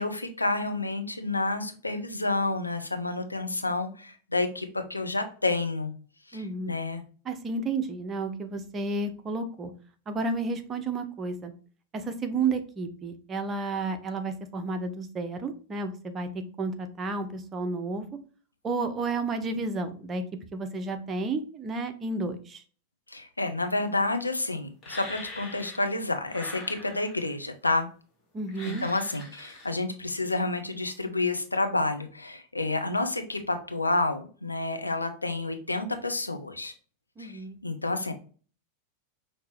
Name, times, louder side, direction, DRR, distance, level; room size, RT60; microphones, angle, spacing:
voice 1, 0.0-5.9 6.3-7.0 23.1-27.9 28.6-36.7 37.2-38.1, left 2 dB, 85° left, 6 dB, 0.6 m, -29 dB
voice 2, 6.3-6.7 7.3-9.7 10.1-11.5 11.9-16.3 16.6-18.1 18.6-20.2 20.5-22.6 28.3-28.8 37.2-37.6, right 3 dB, 25° right, 7 dB, 0.7 m, -31 dB
sound 1, 24.8-26.0 26.3-27.3 28.5-29.7, left 2 dB, 25° left, 2.1 m, -43 dB
5.7 x 2.8 x 3.2 m, 0.40 s
figure-of-eight pair, 90°, 0 cm